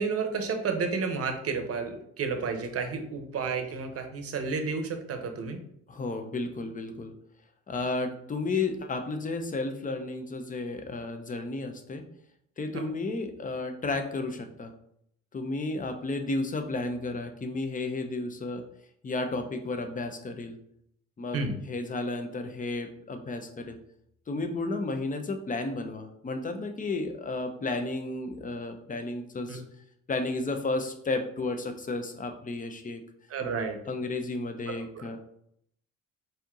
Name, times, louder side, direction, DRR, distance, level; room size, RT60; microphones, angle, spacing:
voice 1, 0.0-5.6 12.7-12.8 21.3-21.6 29.5-29.7 33.3-33.8 35.0-35.2, right 4 dB, 50° right, 6 dB, 0.8 m, -31 dB
voice 2, 5.9-7.1 7.7-12.0 12.6-14.7 15.3-18.6 19.0-20.6 21.2-23.8 24.3-29.6 30.1-33.0 33.9-35.2, left 3 dB, 25° left, 6 dB, 0.6 m, -32 dB
4.3 x 2.7 x 3.7 m, 0.71 s
cardioid pair, 90°, 30 cm